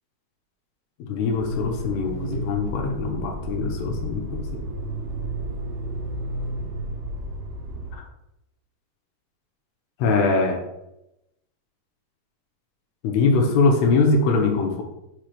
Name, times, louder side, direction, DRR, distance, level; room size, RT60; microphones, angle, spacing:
voice 1, 1.0-4.6 7.9-8.1 10.0-10.6 13.0-14.8, left 3 dB, 85° left, 3 dB, 3.0 m, -22 dB
Motor vehicle (road), 1.3-7.9, right 1 dB, 70° right, 2.8 m, -32 dB
7.2 x 3.4 x 5.8 m, 0.87 s
omnidirectional pair, 4.7 m